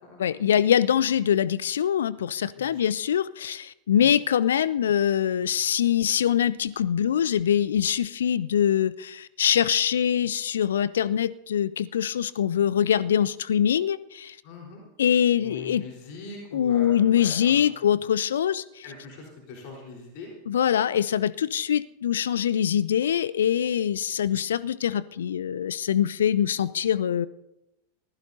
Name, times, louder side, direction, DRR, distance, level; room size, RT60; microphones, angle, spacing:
voice 1, 0.2-14.4 15.0-15.8 16.5-18.6 20.5-27.3, left 9 dB, 65° left, 20 dB, 0.4 m, -23 dB
voice 2, 14.4-14.9 15.4-17.8 18.8-20.3 20.8-20.9, left 3 dB, 45° left, 0 dB, 4.0 m, -42 dB
25.5 x 15.5 x 2.7 m, 0.90 s
figure-of-eight pair, 90°, 0 cm